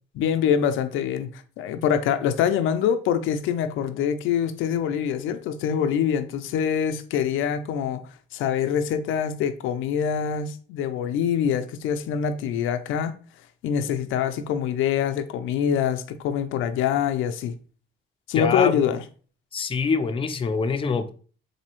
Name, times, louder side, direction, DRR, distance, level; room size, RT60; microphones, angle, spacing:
voice 1, 0.2-8.0 8.3-13.1 13.6-17.5 18.3-19.0, left 8 dB, 85° left, 0.4 m, -25 dB
voice 2, 18.4-18.8 19.5-21.1, left 5 dB, 25° left, 0.5 m, -25 dB
4.0 x 2.7 x 2.9 m
cardioid pair, 90°, 20 cm